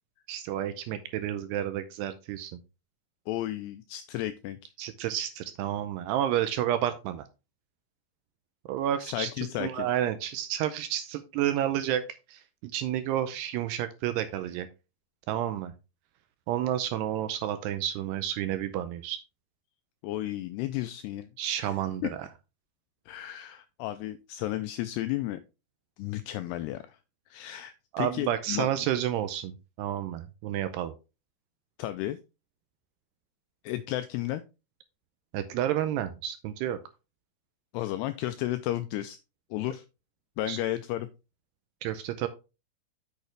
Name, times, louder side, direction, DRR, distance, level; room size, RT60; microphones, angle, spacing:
voice 1, 0.3-2.6 4.8-7.3 8.7-9.3 9.6-14.7 15.3-15.7 16.5-19.2 21.4-22.2 27.9-30.9 35.3-36.8 40.5-40.6 41.8-42.3, right 11 dB, 85° right, 10 dB, 2.4 m, -30 dB
voice 2, 3.3-4.7 9.0-9.9 20.0-21.3 21.6-21.7 22.0-22.1 23.1-25.4 26.0-27.0 27.3-28.7 31.8-32.2 33.6-34.4 37.7-39.2 39.5-39.8 40.4-41.1, left 14 dB, 85° left, 11 dB, 2.3 m, -33 dB
8.2 x 6.5 x 3.2 m, 0.29 s
omnidirectional pair, 5.2 m